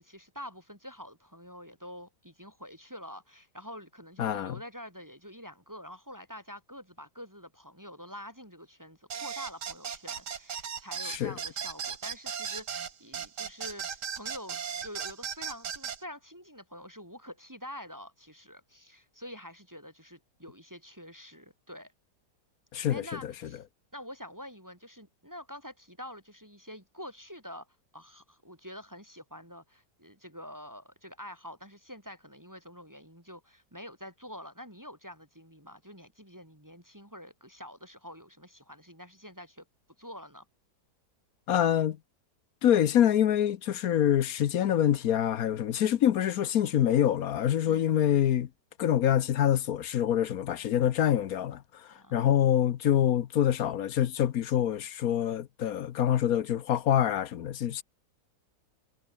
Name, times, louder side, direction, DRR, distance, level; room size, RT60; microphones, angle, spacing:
voice 1, 0.0-14.6 14.8-21.9 22.9-23.6 23.9-27.7 27.9-39.6 40.0-40.4 47.7-47.9 51.9-52.5, equal, 10° right, 4.6 m, -46 dB
voice 2, 4.2-4.5 11.0-11.3 22.7-23.0 41.5-42.0 42.6-48.5 48.8-51.6 52.1-57.8, left 10 dB, 65° left, 1.2 m, -25 dB
sound 1, 9.1-16.0, right 7 dB, 80° right, 2.2 m, -37 dB
omnidirectional pair, 1.8 m